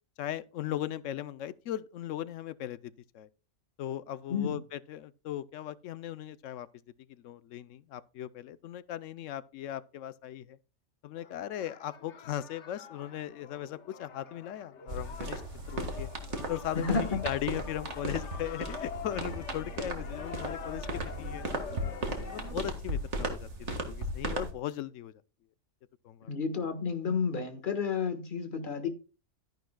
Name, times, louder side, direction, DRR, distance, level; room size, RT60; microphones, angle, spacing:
voice 1, 0.2-3.3 3.8-6.7 7.2-10.6 11.0-15.4 15.7-16.1 16.5-21.6 22.3-25.2 26.0-26.3, left 12 dB, 90° left, 1.0 m, -38 dB
sound 1, 11.2-22.5, left 5 dB, 70° left, 1.4 m, -45 dB
sound 2, 14.9-24.5, right 1 dB, 70° right, 1.9 m, -36 dB
voice 2, 16.7-17.2 26.2-28.9, left 5 dB, 45° left, 1.5 m, -31 dB
13.0 x 10.5 x 2.2 m
omnidirectional pair, 1.2 m